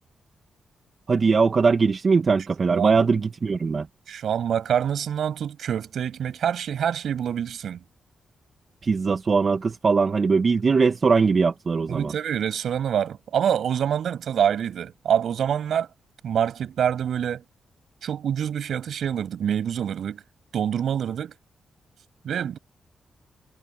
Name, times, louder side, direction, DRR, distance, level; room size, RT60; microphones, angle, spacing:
voice 1, 1.1-3.9 8.8-12.1, right 4 dB, 50° right, 1.9 m, -21 dB
voice 2, 2.7-3.1 4.1-7.8 11.9-15.9 16.2-17.4 18.0-20.2 20.5-21.3 22.2-22.6, right 9 dB, 75° right, 7.2 m, -26 dB
cardioid pair, 65°, 0 cm